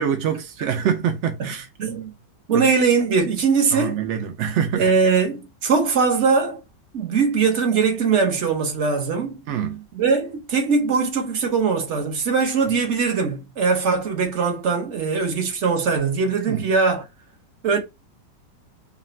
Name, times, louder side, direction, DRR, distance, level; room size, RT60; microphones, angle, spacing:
voice 1, 0.0-2.0 2.5-2.6 3.7-4.9 9.5-9.8 16.5-16.7, right 8 dB, 75° right, 0.6 m, -25 dB
voice 2, 1.8-2.1 2.5-4.0 4.7-6.6 6.9-9.4 9.9-17.0 17.6-17.8, right 5 dB, 50° right, 1.0 m, -21 dB
4.9 x 2.2 x 3.1 m
omnidirectional pair, 1.9 m